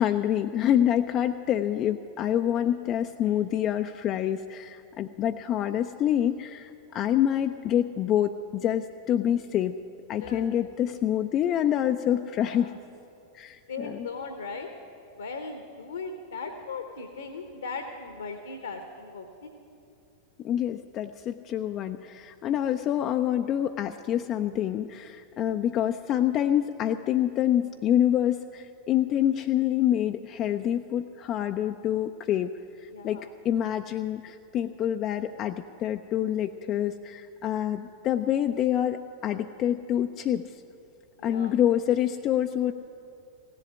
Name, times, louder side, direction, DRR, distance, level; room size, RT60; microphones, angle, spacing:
voice 1, 0.0-9.8 10.1-12.7 13.3-14.1 20.4-40.4 41.2-42.7, left 10 dB, 35° left, 6 dB, 0.4 m, -27 dB
voice 2, 10.2-10.7 12.3-12.7 13.7-14.7 15.1-19.5 32.9-33.3 41.2-41.5, left 4 dB, 70° left, 6 dB, 1.0 m, -38 dB
16.0 x 7.8 x 9.8 m, 2.5 s
figure-of-eight pair, 90°, 0 cm